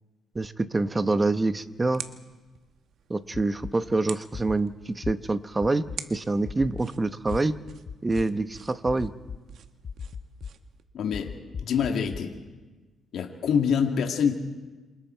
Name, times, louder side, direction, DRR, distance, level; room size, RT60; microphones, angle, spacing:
voice 1, 0.3-2.0 3.1-7.6 8.0-9.1, right 2 dB, 20° right, 11 dB, 1.0 m, -26 dB
sound 1, 0.8-10.8, right 8 dB, 65° right, 1.4 m, -47 dB
sound 2, 3.3-3.7 4.3-4.6 5.0-5.1 5.6-6.0 6.4-6.8 7.3-7.4 7.9-8.2 8.9-9.4 9.8-10.5 11.1-12.2, left 6 dB, 45° left, 0.9 m, -36 dB
voice 2, 10.9-11.3 11.6-12.3 13.1-14.3, left 7 dB, 70° left, 2 dB, 2.3 m, -25 dB
28.0 x 27.0 x 4.6 m, 1.3 s
cardioid pair, 90°, 0 cm